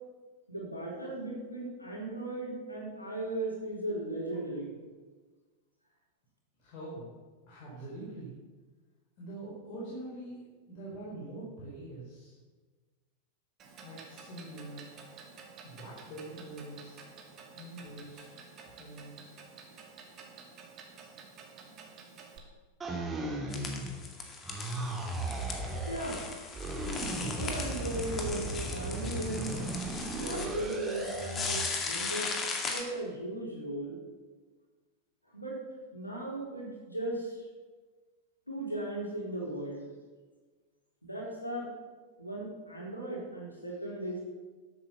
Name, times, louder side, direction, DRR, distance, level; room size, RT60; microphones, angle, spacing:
voice 1, 0.5-4.7 25.9-26.3 27.0-29.6 30.0-32.3 32.6-34.0 35.3-35.6 35.9-37.5 38.5-39.9 41.0-41.7 42.2-44.2, right 1 dB, 85° left, -3 dB, 4.0 m, -37 dB
voice 2, 6.6-7.1 7.5-8.3 9.2-12.4 13.8-14.9 15.6-17.0 17.5-18.3 18.6-19.3, right 1 dB, 40° left, -7 dB, 4.3 m, -44 dB
Clock, 13.6-22.4, right 5 dB, 30° right, 2.6 m, -51 dB
sound 1, 22.8-24.1 24.4-26.1 26.5-31.7, right 2 dB, 15° right, 2.5 m, -36 dB
sound 2, 23.5-32.8, left 4 dB, 25° left, 2.1 m, -38 dB
12.5 x 8.6 x 6.8 m, 1.4 s
figure-of-eight pair, 90°, 0 cm